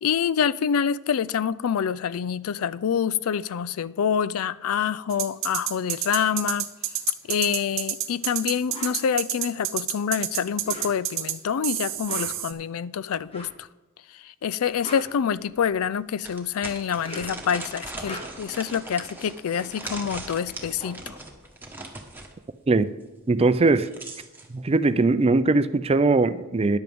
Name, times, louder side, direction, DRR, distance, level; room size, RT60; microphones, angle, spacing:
voice 1, 0.0-6.7 7.3-13.7 14.1-21.2, left 7 dB, 75° left, 17 dB, 0.4 m, -26 dB
sound 1, 5.1-11.3 11.6-12.5, right 12 dB, 65° right, 1.0 m, -28 dB
sound 2, 8.7-9.0 10.5-11.2 11.9-12.5 13.3-13.6 14.6-15.8 16.8-17.5 17.9-18.6 20.1-20.2 20.5-22.1, left 1 dB, 25° left, 1.4 m, -42 dB
sound 3, 14.7-14.8 15.3-15.4 16.2-22.3 23.6-24.5, right 2 dB, 10° right, 1.4 m, -39 dB
voice 2, 23.3-23.9 24.5-26.8, right 3 dB, 30° right, 13 dB, 0.4 m, -20 dB
13.5 x 10.5 x 3.6 m, 1.1 s
head